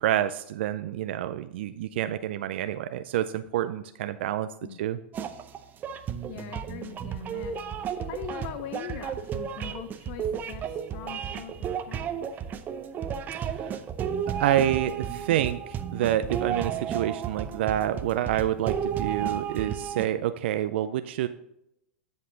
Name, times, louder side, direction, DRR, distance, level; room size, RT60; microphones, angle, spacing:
voice 1, 0.0-4.5 4.8-5.0 13.4-13.8 14.4-21.3, right 12 dB, 70° right, 10 dB, 0.4 m, -28 dB
sound 1, 5.1-20.1, right 8 dB, 30° right, 0.7 m, -33 dB
voice 2, 6.3-7.5 8.0-12.4, left 9 dB, 50° left, 9 dB, 0.6 m, -41 dB
10.0 x 5.4 x 3.8 m, 0.80 s
hypercardioid pair, 110°, 6 cm